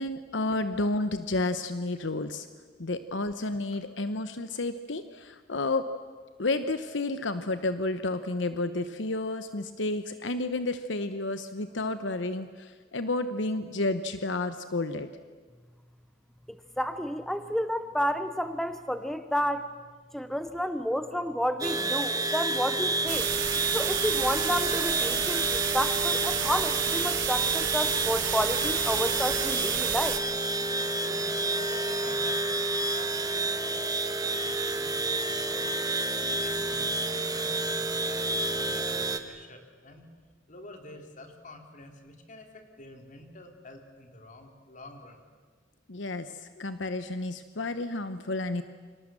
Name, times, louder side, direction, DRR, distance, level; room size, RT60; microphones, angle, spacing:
voice 1, 0.0-2.5 2.8-5.8 6.4-15.1 45.9-48.6, left 2 dB, 70° left, 10 dB, 1.0 m, -31 dB
voice 2, 16.5-19.7 20.1-23.3 23.7-30.1, equal, ahead, 10 dB, 0.8 m, -30 dB
sound 1, 21.6-39.2, right 2 dB, 20° right, 1.5 m, -29 dB
sound 2, 23.1-30.2, right 10 dB, 90° right, 2.3 m, -31 dB
voice 3, 30.9-35.7 36.1-40.1 40.5-45.2, left 1 dB, 45° left, 5 dB, 3.5 m, -48 dB
29.5 x 25.5 x 7.6 m, 1.5 s
head